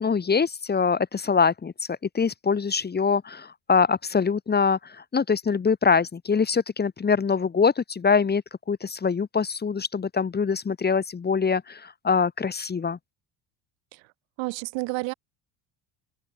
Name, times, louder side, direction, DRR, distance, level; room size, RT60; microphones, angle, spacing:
voice 1, 0.0-1.7 2.1-4.8 5.1-8.4 8.7-13.0, left 5 dB, 20° left, 1.5 m, -23 dB
voice 2, 14.4-15.1, right 26 dB, 80° right, 2.7 m, -30 dB
cardioid pair, 115°, 44 cm